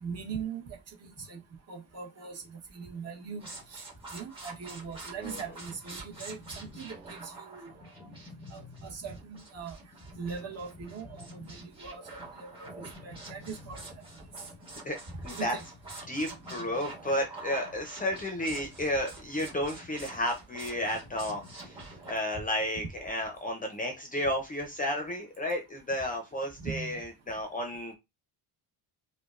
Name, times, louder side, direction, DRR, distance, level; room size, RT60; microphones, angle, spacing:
voice 1, 0.0-0.8 1.3-1.4 1.7-2.4 2.7-3.4 3.7-3.8 4.1-7.7 8.0-8.1 8.5-9.8 10.2-12.7 13.0-13.8 15.1-15.6 26.6-27.0, right 5 dB, 35° right, 1.1 m, -40 dB
sound 1, 3.4-22.1, right 2 dB, 10° right, 1.5 m, -47 dB
voice 2, 16.1-27.9, left 1 dB, 20° left, 0.6 m, -32 dB
4.9 x 2.2 x 2.4 m
cardioid pair, 145°, 43 cm